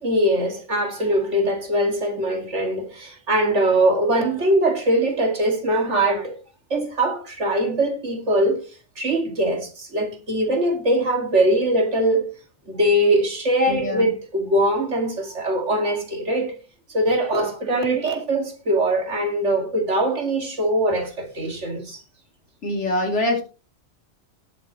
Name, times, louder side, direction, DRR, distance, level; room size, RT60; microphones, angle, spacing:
voice 1, 0.0-6.4 6.7-12.3 12.7-16.6 16.9-22.0, right 1 dB, 75° right, 2.6 m, -22 dB
voice 2, 13.7-14.1 22.6-23.4, left 1 dB, 80° left, 3.2 m, -24 dB
19.0 x 7.4 x 3.0 m
omnidirectional pair, 1.2 m